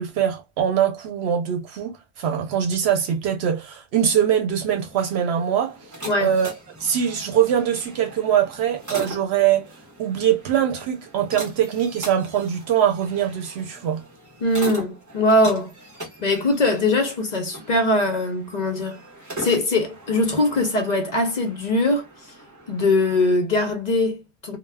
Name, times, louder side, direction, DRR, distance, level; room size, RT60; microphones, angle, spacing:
voice 1, 0.0-5.8 6.2-6.5 6.8-9.7 10.0-14.0, right 9 dB, 80° right, 0.8 m, -22 dB
sound 1, 4.8-23.3, right 1 dB, 20° right, 0.9 m, -40 dB
voice 2, 6.0-6.3 14.4-15.7 16.2-19.0 19.4-22.1 22.7-24.6, left 2 dB, 50° left, 0.6 m, -21 dB
2.2 x 2.1 x 3.3 m
omnidirectional pair, 1.1 m